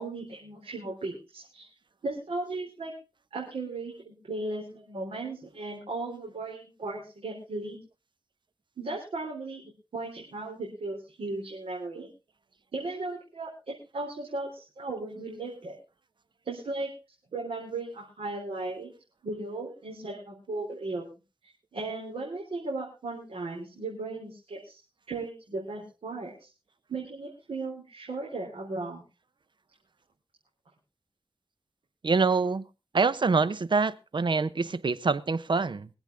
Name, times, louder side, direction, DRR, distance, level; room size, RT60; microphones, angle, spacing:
voice 1, 0.0-1.7 2.0-2.9 3.3-7.8 8.8-9.6 9.9-12.1 12.7-15.8 16.4-16.9 17.3-18.9 19.2-21.0 21.7-24.8 25.1-26.5 26.9-29.0, right 2 dB, 90° right, 4.0 m, -36 dB
voice 2, 32.0-32.6 32.9-35.9, right 4 dB, 55° right, 0.8 m, -25 dB
24.0 x 8.1 x 3.4 m
wide cardioid pair, 70°, 10 cm